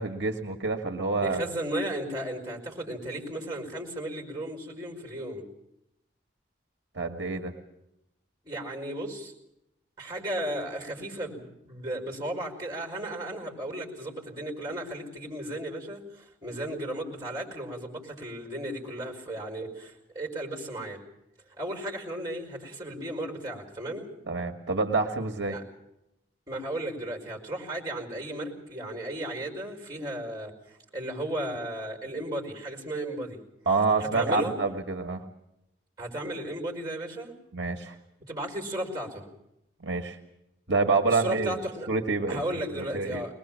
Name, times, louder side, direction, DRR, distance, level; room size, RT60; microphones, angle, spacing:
voice 1, 0.0-1.5 6.9-7.5 24.3-25.6 33.6-35.2 37.5-38.0 39.8-40.2 40.7-41.6 41.9-43.2, right 3 dB, 70° right, 4 dB, 1.7 m, -27 dB
voice 2, 1.2-5.5 8.4-9.3 10.0-21.0 21.6-24.1 25.5-25.6 26.5-33.4 34.0-34.5 36.0-37.3 38.3-39.3 41.1-41.9 42.3-43.3, right 1 dB, 20° right, 2 dB, 5.1 m, -35 dB
22.0 x 20.5 x 7.5 m, 0.84 s
head